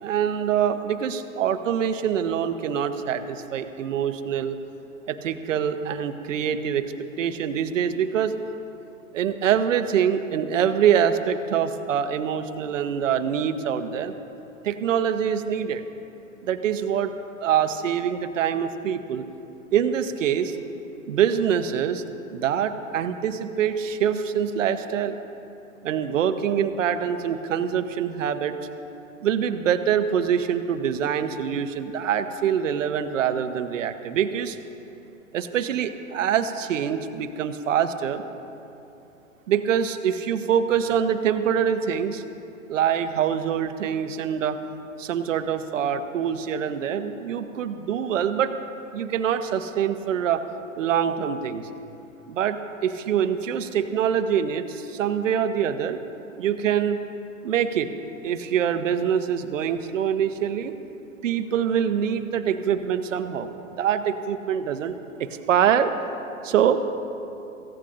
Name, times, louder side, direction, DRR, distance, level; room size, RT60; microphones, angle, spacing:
voice 1, 0.0-4.6 5.1-6.8 7.2-8.3 9.1-14.1 14.6-15.8 16.4-17.1 17.4-19.2 19.7-20.6 21.1-22.0 22.3-25.2 25.8-28.6 29.2-34.6 35.3-38.2 39.5-42.2 42.7-44.6 45.0-48.5 48.9-50.4 50.8-51.6 52.3-56.0 56.4-57.0 57.4-57.9 58.2-60.7 61.2-63.5 63.8-64.9 65.2-65.9 66.4-66.9, right 8 dB, 65° right, 8 dB, 1.1 m, -24 dB
23.5 x 16.0 x 2.6 m, 2.8 s
hypercardioid pair, 120°, 41 cm